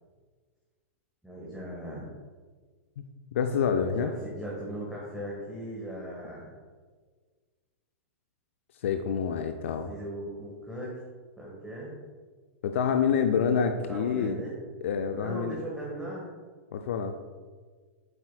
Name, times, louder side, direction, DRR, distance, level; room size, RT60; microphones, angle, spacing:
voice 1, 1.2-2.1 3.9-6.6 9.9-11.0 11.4-11.9 13.7-14.6 15.2-16.3, right 1 dB, 5° right, -5 dB, 1.7 m, -38 dB
voice 2, 3.3-4.1 8.8-9.9 12.6-14.4 14.8-15.6 16.7-17.1, left 7 dB, 60° left, 6 dB, 0.5 m, -27 dB
8.1 x 7.3 x 2.4 m, 1.5 s
figure-of-eight pair, 105°, 8 cm